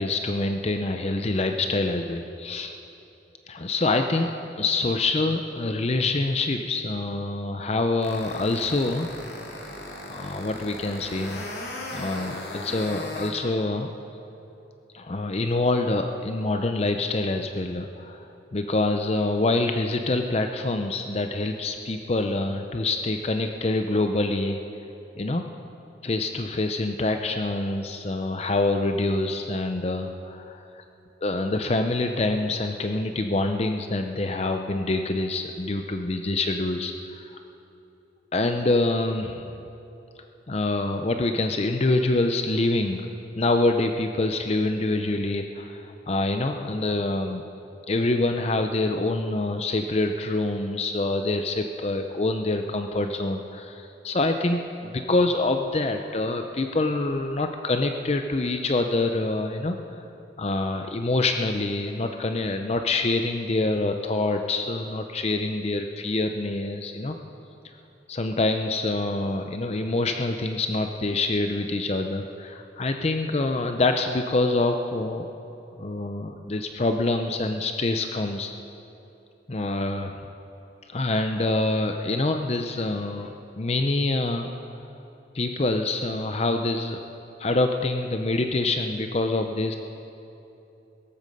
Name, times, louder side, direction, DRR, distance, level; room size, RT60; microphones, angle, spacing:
voice 1, 0.0-2.7 3.5-4.3 4.6-9.1 10.1-11.5 11.9-13.9 14.9-24.6 25.2-25.5 26.0-30.8 31.2-37.4 38.3-39.5 40.5-43.1 43.4-47.4 47.9-60.0 60.4-67.2 68.1-75.3 75.8-78.5 79.5-80.1 80.9-83.3 83.6-84.5 85.3-87.0 87.4-89.8, left 2 dB, 35° left, 6 dB, 0.6 m, -26 dB
sound 1, 8.0-13.3, left 2 dB, 65° left, 2.5 m, -37 dB
18.0 x 14.0 x 5.4 m, 2.9 s
head